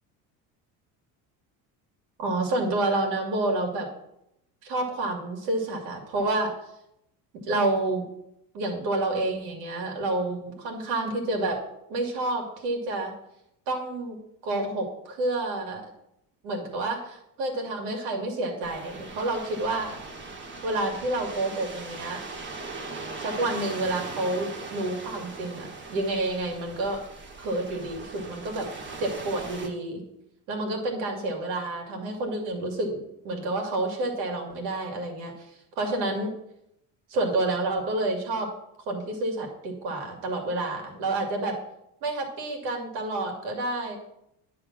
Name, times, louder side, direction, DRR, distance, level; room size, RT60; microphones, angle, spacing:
voice 1, 2.2-3.9 4.6-6.5 7.5-8.0 8.5-11.6 11.9-13.1 13.7-14.2 14.4-15.8 16.4-20.0 20.6-22.2 23.2-27.0 27.4-28.7 29.0-30.0 30.5-35.5 35.8-36.3 37.1-38.5 38.9-41.6 42.0-44.0, right 2 dB, 90° right, 2 dB, 2.2 m, -29 dB
sound 1, 18.6-29.7, right 3 dB, 30° right, 1.4 m, -40 dB
10.0 x 3.7 x 7.3 m, 0.81 s
cardioid pair, 135°, 38 cm